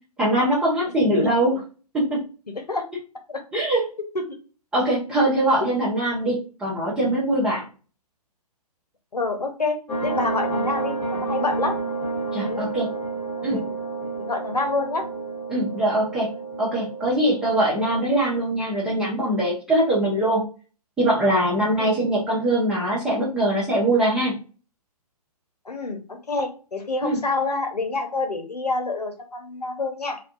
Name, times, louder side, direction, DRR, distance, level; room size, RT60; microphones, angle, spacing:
voice 1, 0.2-1.5 1.9-2.2 3.5-3.8 4.7-7.6 12.3-12.9 13.4-13.6 15.5-16.3 16.6-20.4 21.0-24.3 27.0-27.2, right 1 dB, 5° right, -7 dB, 0.3 m, -22 dB
voice 2, 2.5-2.8 3.3-3.4 4.1-4.4 9.1-9.8 10.0-11.7 12.4-12.9 13.4-13.8 14.2-15.0 21.8-22.0 25.6-30.2, left 3 dB, 80° left, 5 dB, 0.7 m, -28 dB
sound 1, 9.9-18.4, right 3 dB, 15° left, 0.8 m, -30 dB
2.3 x 2.2 x 2.5 m, 0.36 s
figure-of-eight pair, 125°, 20 cm